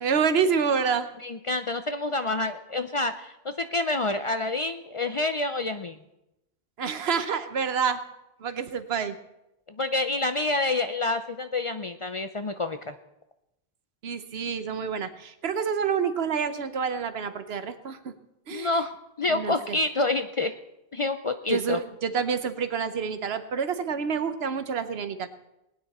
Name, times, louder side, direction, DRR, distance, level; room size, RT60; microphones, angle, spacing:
voice 1, 0.0-1.1 6.8-8.0 8.4-9.2 14.0-18.1 18.5-18.8 19.3-19.8 21.5-25.3, right 6 dB, 80° right, 10 dB, 1.1 m, -28 dB
voice 2, 1.2-6.0 9.7-12.9 18.5-18.9 19.2-20.5 20.9-21.8, left 2 dB, 45° left, 9 dB, 0.5 m, -28 dB
19.5 x 9.6 x 4.2 m, 0.89 s
omnidirectional pair, 1.0 m